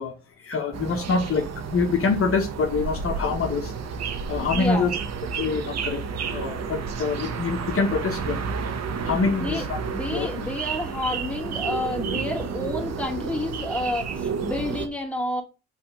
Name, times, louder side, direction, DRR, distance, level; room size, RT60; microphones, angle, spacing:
voice 1, 0.0-3.7 4.2-4.9 5.3-8.4 9.0-9.8 10.1-10.4, left 4 dB, 45° left, 2 dB, 1.1 m, -26 dB
sound 1, 0.7-14.9, right 5 dB, 60° right, 1.1 m, -31 dB
voice 2, 4.5-5.0 9.0-9.6 9.9-15.4, left 1 dB, 5° left, 0 dB, 2.4 m, -30 dB
6.2 x 3.4 x 5.9 m, 0.32 s
cardioid pair, 90°, 30 cm